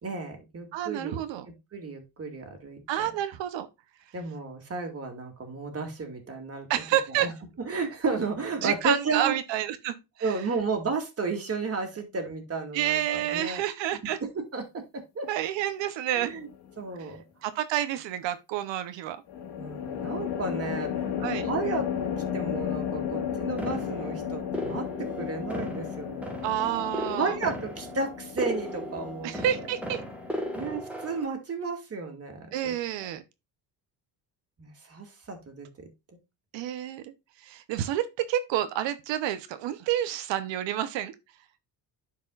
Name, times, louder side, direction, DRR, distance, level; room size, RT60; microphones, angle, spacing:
voice 1, 0.0-1.2 1.7-2.8 4.1-6.7 7.2-7.3 7.6-9.3 10.2-13.6 14.3-15.3 16.1-16.5 16.8-17.2 19.6-21.2 21.4-26.4 27.2-29.3 30.6-32.8 34.6-35.9, right 4 dB, 35° right, 2.4 m, -33 dB
voice 2, 0.7-1.5 2.9-3.7 6.7-7.3 8.6-10.3 12.7-14.2 15.3-16.3 17.4-19.2 21.2-21.5 26.4-27.4 29.2-30.0 32.5-33.2 36.5-41.1, right 11 dB, 85° right, 1.0 m, -29 dB
sound 1, 16.2-16.7 19.3-30.6, left 8 dB, 75° left, 1.7 m, -34 dB
sound 2, 23.6-31.3, equal, 5° right, 1.8 m, -37 dB
11.5 x 4.8 x 2.4 m
cardioid pair, 110°, 43 cm